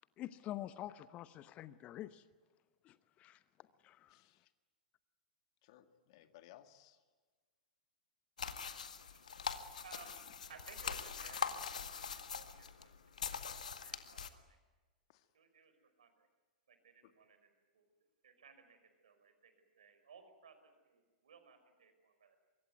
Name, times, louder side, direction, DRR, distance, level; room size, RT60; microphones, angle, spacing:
voice 1, 0.2-2.2 2.8-3.4 3.8-4.2, left 13 dB, 30° left, 15 dB, 0.9 m, -47 dB
voice 2, 4.1-4.5 5.6-7.0 15.1-15.3 17.0-17.1, left 12 dB, 45° left, 8 dB, 2.0 m, -61 dB
sound 1, 8.4-14.3, left 6 dB, 70° left, 1.8 m, -43 dB
voice 3, 9.0-14.6 15.3-15.7 16.0-16.3 16.7-17.8 18.2-22.4, right 5 dB, 65° right, 8 dB, 5.3 m, -61 dB
24.5 x 23.0 x 9.4 m, 1.3 s
figure-of-eight pair, 100°, 4 cm